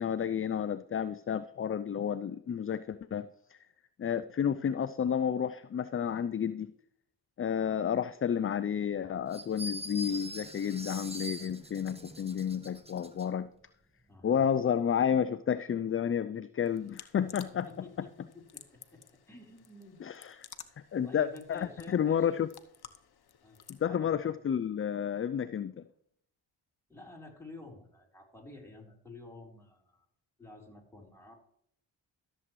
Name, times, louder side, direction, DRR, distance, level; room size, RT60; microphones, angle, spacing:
voice 1, 0.0-3.6 4.0-6.7 7.4-13.5 14.2-17.7 20.0-20.4 20.9-22.5 23.7-25.8, left 8 dB, 30° left, 14 dB, 0.4 m, -31 dB
sound 1, 9.3-13.3, right 1 dB, 10° right, 1.3 m, -43 dB
voice 2, 14.1-14.4 17.2-17.3 17.7-20.1 21.0-22.5 23.4-23.6 23.9-24.3 26.9-30.1 30.4-31.3, left 2 dB, 5° left, -1 dB, 4.0 m, -50 dB
sound 2, 16.6-23.9, left 8 dB, 50° left, 1.0 m, -54 dB
14.0 x 7.5 x 3.2 m, 0.69 s
supercardioid pair, 40°, 48 cm